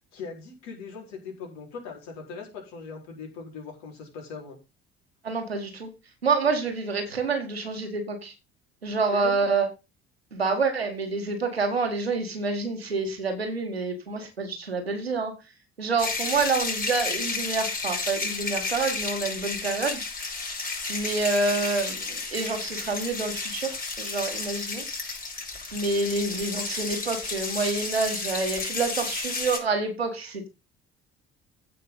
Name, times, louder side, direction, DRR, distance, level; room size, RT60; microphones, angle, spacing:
voice 1, 0.1-4.6 9.1-9.5, left 5 dB, 60° left, 0 dB, 4.5 m, -40 dB
voice 2, 5.2-5.9 6.2-8.3 8.8-9.7 10.3-15.3 15.8-20.0 20.9-24.8 25.7-30.5, right 4 dB, 90° right, 5 dB, 1.8 m, -27 dB
sound 1, 16.0-29.6, left 3 dB, 30° left, 5.8 m, -32 dB
15.5 x 5.4 x 4.0 m, 0.28 s
figure-of-eight pair, 55°, 30 cm